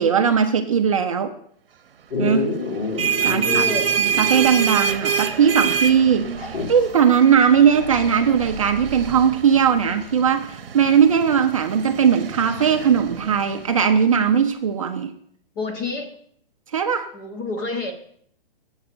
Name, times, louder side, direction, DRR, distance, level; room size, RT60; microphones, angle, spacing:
voice 1, 0.0-1.3 2.2-2.5 3.2-3.6 4.0-15.1 16.7-17.1, right 7 dB, 35° right, 5 dB, 0.5 m, -19 dB
Dog, 2.1-4.8 5.1-5.2 6.3-6.9 9.0-9.1, left 3 dB, 70° left, 3.0 m, -28 dB
sound 1, 2.7-14.0, right 7 dB, 70° right, 0.9 m, -27 dB
voice 2, 3.1-3.9 15.6-16.1 17.1-17.9, left 3 dB, 20° left, 4 dB, 0.8 m, -29 dB
7.9 x 5.5 x 6.6 m, 0.64 s
hypercardioid pair, 170°, 30 cm